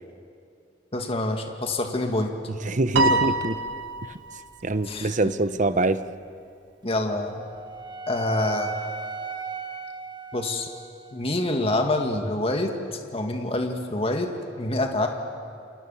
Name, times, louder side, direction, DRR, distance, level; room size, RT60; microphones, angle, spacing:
voice 1, 0.9-2.3 3.1-3.2 4.9-5.1 6.8-7.4 8.1-8.7 10.3-10.7 11.1-12.7 13.1-15.1, left 2 dB, 35° left, 3 dB, 2.1 m, -26 dB
voice 2, 2.5-3.6 4.1-4.2 4.6-6.0, right 2 dB, 45° right, 12 dB, 0.9 m, -24 dB
Piano, 3.0-4.5, right 2 dB, 85° right, 1.1 m, -25 dB
Wind instrument woodwind instrument, 7.0-11.2, right 4 dB, 25° right, 1.2 m, -37 dB
29.0 x 28.0 x 7.2 m, 2.5 s
head